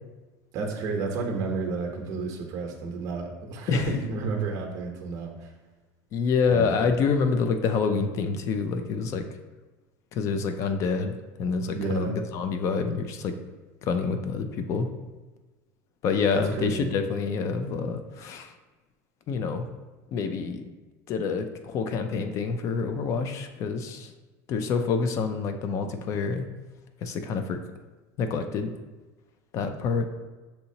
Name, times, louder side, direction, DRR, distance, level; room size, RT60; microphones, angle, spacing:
voice 1, 0.5-5.5 6.5-6.7 11.7-12.2 16.3-17.0, right 3 dB, 45° right, 2 dB, 0.8 m, -31 dB
voice 2, 6.1-9.2 10.1-13.3 13.8-14.9 16.0-18.5 19.3-19.7 20.1-20.7 21.1-24.1 24.5-26.5 27.0-27.6 28.2-28.7 29.5-30.0, left 5 dB, 40° left, 8 dB, 0.4 m, -27 dB
6.5 x 2.9 x 2.7 m, 1.2 s
cardioid pair, 155°, 8 cm